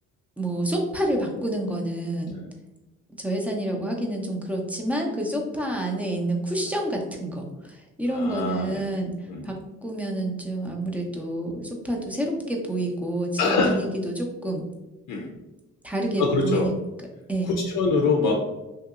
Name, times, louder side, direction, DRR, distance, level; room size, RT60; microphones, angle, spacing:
voice 1, 0.4-2.4 3.2-9.1 9.4-9.5 9.8-14.6 15.8-16.7 17.3-17.6, right 1 dB, 5° right, 0 dB, 0.6 m, -28 dB
voice 2, 8.1-8.9 9.3-9.5 13.4-13.8 15.1-15.4 16.2-16.7 17.4-18.4, left 4 dB, 85° left, 1 dB, 0.5 m, -24 dB
2.8 x 2.8 x 2.4 m, 1.0 s
cardioid pair, 90°, 30 cm